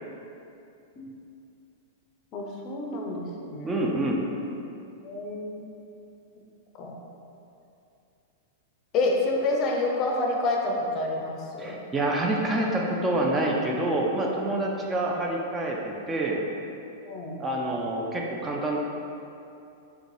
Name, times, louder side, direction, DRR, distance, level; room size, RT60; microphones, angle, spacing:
voice 1, 2.3-3.8 5.0-5.7 6.8-6.9 8.9-11.9 17.0-17.4, left 2 dB, 40° left, 0 dB, 0.5 m, -28 dB
voice 2, 3.6-4.2 11.6-16.4 17.4-18.8, right 1 dB, 20° right, -1 dB, 0.4 m, -27 dB
3.7 x 2.2 x 3.1 m, 2.7 s
hypercardioid pair, 120°, 0 cm